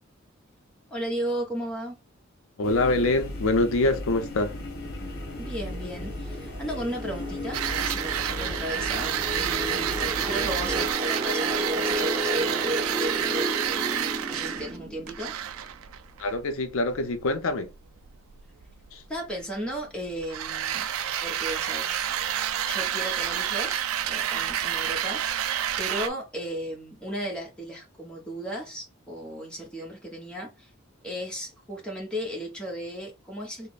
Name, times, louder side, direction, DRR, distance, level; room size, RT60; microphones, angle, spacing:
voice 1, 0.9-2.0 5.4-13.5 14.3-15.4 19.1-20.9 21.2-21.9 22.6-30.7 31.0-33.7, equal, 5° left, 1.0 m, -35 dB
voice 2, 2.6-4.5 16.2-17.7 18.9-19.0, left 2 dB, 70° left, 0.5 m, -25 dB
sound 1, 2.6-10.9, left 1 dB, 50° left, 0.9 m, -36 dB
sound 2, 4.8-15.3, equal, 20° right, 0.4 m, -33 dB
sound 3, 7.5-26.1, right 10 dB, 85° right, 0.4 m, -29 dB
3.2 x 2.0 x 4.0 m
head